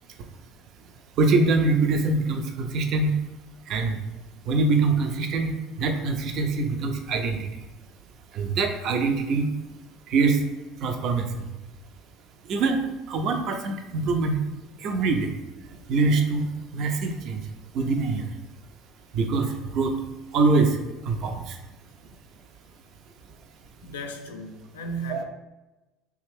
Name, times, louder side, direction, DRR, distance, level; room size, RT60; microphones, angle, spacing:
voice 1, 1.2-3.2 3.7-4.0 4.5-5.5 5.8-7.5 8.3-9.5 10.1-10.4 10.8-11.5 12.5-12.8 13.1-14.4 14.8-15.3 15.9-16.5 16.7-17.4 17.7-18.3 19.1-19.9 20.3-20.8 21.0-21.6 25.1-25.2, right 3 dB, 55° right, 0.4 m, -24 dB
voice 2, 15.7-16.0 23.8-25.2, right 2 dB, 80° left, 0.3 m, -36 dB
3.4 x 2.5 x 3.4 m
hypercardioid pair, 70°, 0 cm